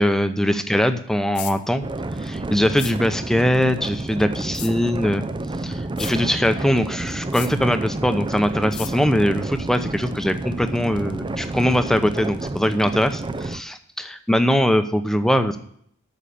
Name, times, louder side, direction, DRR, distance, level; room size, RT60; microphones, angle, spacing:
voice 1, 0.0-1.8 2.2-5.2 5.6-15.6, equal, ahead, 9 dB, 0.8 m, -21 dB
sound 1, 1.4-1.6 2.8-3.0 4.5-4.7 6.0-6.2 7.3-7.5 8.7-8.9, left 13 dB, 80° left, 1.0 m, -34 dB
sound 2, 1.8-13.6, right 2 dB, 20° right, 0.5 m, -30 dB
9.3 x 6.6 x 8.6 m, 0.66 s
head